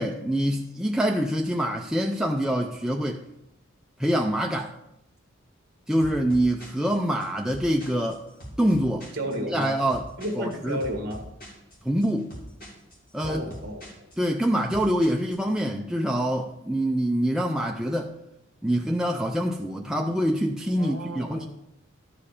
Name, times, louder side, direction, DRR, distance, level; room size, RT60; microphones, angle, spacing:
voice 1, 0.0-3.2 4.0-4.7 5.9-8.2 8.6-9.1 9.5-10.1 10.4-10.8 11.8-12.3 13.1-13.5 14.2-18.1 18.6-21.5, equal, 5° right, 1 dB, 0.3 m, -25 dB
sound 1, 6.0-15.5, equal, 45° left, 2.8 m, -44 dB
voice 2, 9.1-9.8 10.2-11.2 13.2-13.8 20.8-21.5, equal, 45° right, 3 dB, 1.5 m, -32 dB
12.5 x 4.9 x 5.0 m, 0.84 s
head